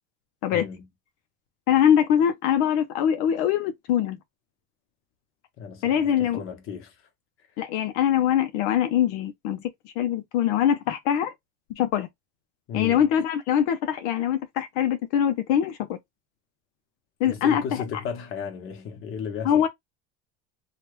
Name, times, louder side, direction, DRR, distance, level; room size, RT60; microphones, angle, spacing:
voice 1, 0.5-0.9 5.6-7.0 12.7-13.1 17.2-19.7, left 6 dB, 45° left, 1.1 m, -35 dB
voice 2, 1.7-4.2 5.8-6.4 7.6-9.6 10.0-11.3 11.8-12.1 12.7-16.0 17.2-17.6 19.4-19.7, left 9 dB, 85° left, 0.7 m, -23 dB
3.0 x 2.4 x 3.1 m
cardioid pair, 150°, 30 cm